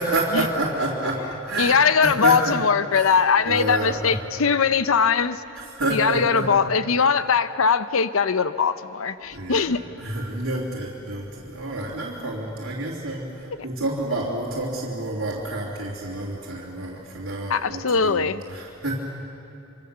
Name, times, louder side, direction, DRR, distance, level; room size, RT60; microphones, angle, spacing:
voice 1, 0.0-1.8 2.0-2.6 2.9-3.1 3.5-4.2 5.5-6.5 7.0-7.1 9.3-9.7 10.0-19.0, right 2 dB, 85° right, -6 dB, 3.1 m, -28 dB
voice 2, 1.6-5.4 5.9-9.8 17.5-18.4, left 5 dB, 80° left, 13 dB, 0.7 m, -21 dB
27.0 x 25.5 x 6.9 m, 2.8 s
head